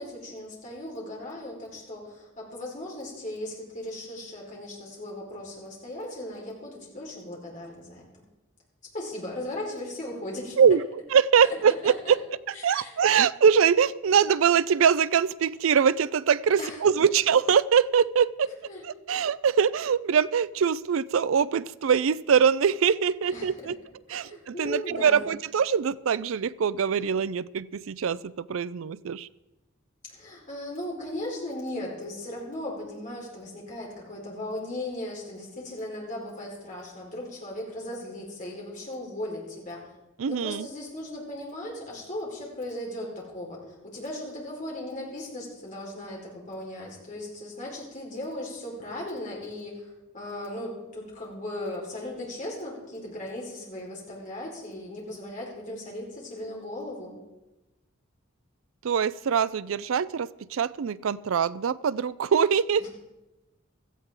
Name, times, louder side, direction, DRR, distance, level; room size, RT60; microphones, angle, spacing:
voice 1, 0.0-8.0 8.9-10.6 11.4-12.1 12.6-12.9 16.6-16.8 18.7-18.8 23.3-23.5 24.1-25.3 30.0-39.8 40.3-43.6 43.8-49.8 50.1-57.1 62.8-62.9, left 1 dB, 40° left, -3 dB, 4.5 m, -37 dB
voice 2, 11.1-12.2 12.5-18.5 18.8-23.8 24.1-29.3 40.2-40.7 58.8-62.9, right 7 dB, 80° right, 18 dB, 0.4 m, -23 dB
16.5 x 14.0 x 3.8 m, 1.0 s
head